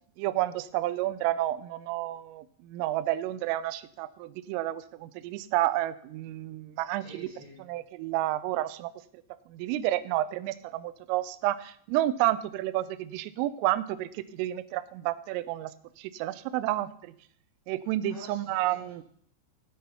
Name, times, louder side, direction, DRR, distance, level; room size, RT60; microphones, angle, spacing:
voice 1, 0.2-7.3 7.7-8.9 9.5-17.2 17.7-19.0, right 15 dB, 85° right, 16 dB, 3.1 m, -30 dB
voice 2, 7.0-7.6 18.1-19.0, right 1 dB, 35° left, -3 dB, 1.9 m, -49 dB
9.6 x 7.7 x 5.6 m, 0.63 s
omnidirectional pair, 5.8 m